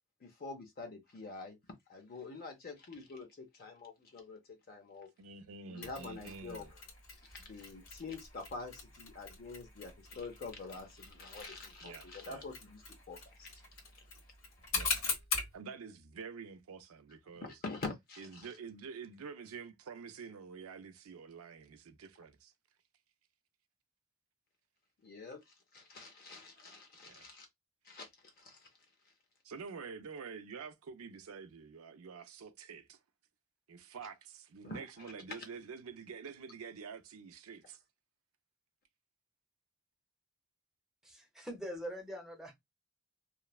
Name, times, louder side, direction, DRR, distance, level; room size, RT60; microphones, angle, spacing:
voice 1, 0.2-1.6 1.9-5.1 5.7-6.8 7.3-13.7 14.0-14.1 17.4-18.5 25.0-27.5 27.8-28.7 34.6-35.4, left 3 dB, 45° left, 0.6 m, -46 dB
voice 2, 5.2-6.7 11.8-12.5 14.7-15.0 15.5-17.6 18.2-22.5 27.0-27.3 29.4-33.0 33.7-37.8, right 5 dB, 80° right, 0.5 m, -48 dB
Mechanisms, 5.8-15.6, left 4 dB, 85° left, 1.4 m, -42 dB
voice 3, 41.0-42.5, equal, 5° right, 0.7 m, -43 dB
3.1 x 2.0 x 2.3 m
head